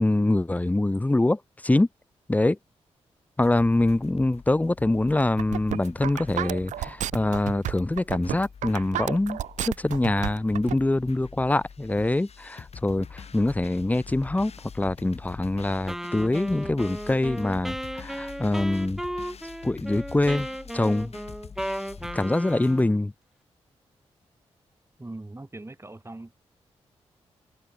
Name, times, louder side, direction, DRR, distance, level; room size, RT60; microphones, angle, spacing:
voice 1, 0.0-1.9 2.3-2.6 3.4-14.5 14.8-19.0 19.6-20.5 20.7-21.1 22.1-23.1, left 2 dB, 15° left, 0.5 m, -24 dB
sound 1, 3.4-22.8, left 6 dB, 60° left, 3.3 m, -45 dB
sound 2, 5.2-10.7, right 12 dB, 85° right, 0.6 m, -31 dB
Wind instrument woodwind instrument, 15.9-23.0, equal, 5° right, 3.7 m, -35 dB
voice 2, 25.0-26.3, right 2 dB, 20° right, 5.5 m, -40 dB
supercardioid pair, 50°, 12 cm